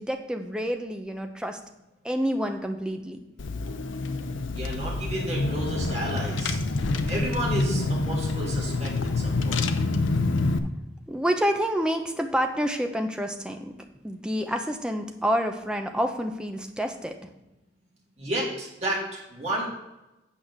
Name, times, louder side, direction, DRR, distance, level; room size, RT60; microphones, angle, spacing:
voice 1, 0.0-1.6 2.0-3.2 11.1-13.7 14.0-17.2, equal, 5° right, 4 dB, 0.7 m, -28 dB
Car / Engine, 3.4-10.6, left 3 dB, 80° left, 0.7 m, -27 dB
voice 2, 4.5-6.6 7.1-9.7 18.2-19.7, right 1 dB, 35° right, -4 dB, 2.7 m, -32 dB
8.9 x 4.9 x 6.3 m, 0.98 s
head